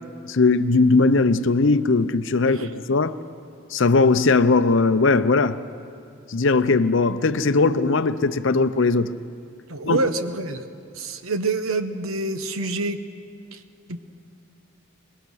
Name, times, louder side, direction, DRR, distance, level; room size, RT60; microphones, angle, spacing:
voice 1, 0.3-3.1 3.7-5.6 6.3-9.1 9.8-10.0, left 3 dB, 60° left, 0.6 m, -19 dB
voice 2, 9.7-10.6 10.9-13.0 13.9-14.0, right 3 dB, 80° right, 1.0 m, -26 dB
22.0 x 21.5 x 6.3 m
head